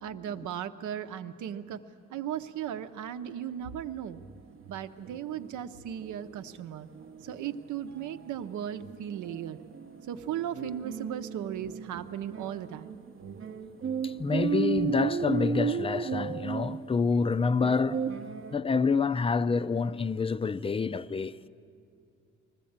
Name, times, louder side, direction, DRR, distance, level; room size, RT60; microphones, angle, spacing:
voice 1, 0.0-1.8 2.1-4.2 4.7-6.9 7.2-9.6 10.1-12.9, right 10 dB, 75° right, 0.8 m, -36 dB
sound 1, 3.2-3.3 3.7-3.8 4.1-18.6, right 6 dB, 45° right, 0.8 m, -35 dB
voice 2, 14.0-18.0 18.5-21.5, left 5 dB, 20° left, 0.5 m, -27 dB
20.5 x 14.5 x 8.7 m
cardioid pair, 90°, 30 cm